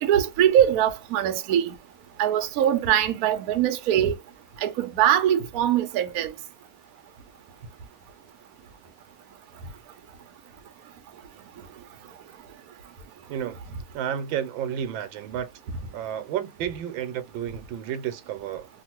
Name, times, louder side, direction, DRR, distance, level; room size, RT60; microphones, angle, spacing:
voice 1, 0.0-1.7 2.2-4.1 4.6-6.3, right 10 dB, 65° right, 0.9 m, -22 dB
voice 2, 13.9-15.5 15.9-18.7, right 9 dB, 85° right, 1.4 m, -31 dB
2.9 x 2.5 x 2.9 m
omnidirectional pair, 2.1 m